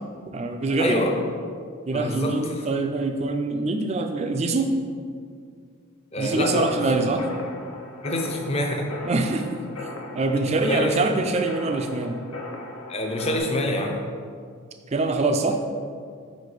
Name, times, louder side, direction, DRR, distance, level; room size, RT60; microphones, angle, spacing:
voice 1, 0.3-1.1 1.9-4.7 6.2-7.3 9.0-9.9 10.1-12.2 14.9-15.6, right 3 dB, 30° right, 5 dB, 0.3 m, -24 dB
voice 2, 0.8-1.2 1.9-2.7 6.1-7.0 8.0-8.9 10.5-11.0 12.9-14.0, left 1 dB, 30° left, 2 dB, 0.5 m, -26 dB
sound 1, 6.5-13.4, left 2 dB, 85° left, 0.8 m, -38 dB
4.9 x 4.1 x 4.8 m, 2.1 s
head